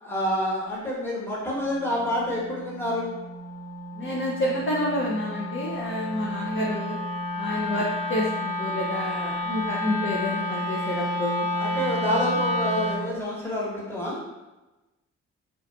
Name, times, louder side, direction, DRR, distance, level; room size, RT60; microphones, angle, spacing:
voice 1, 0.0-3.1 11.5-14.2, equal, 5° left, -6 dB, 1.0 m, -28 dB
Wind instrument woodwind instrument, 1.5-13.1, left 1 dB, 20° right, 0.5 m, -31 dB
voice 2, 4.0-7.0 7.3-11.5, left 1 dB, 40° left, -5 dB, 0.5 m, -29 dB
2.5 x 2.5 x 2.3 m, 1.1 s
supercardioid pair, 55°, 32 cm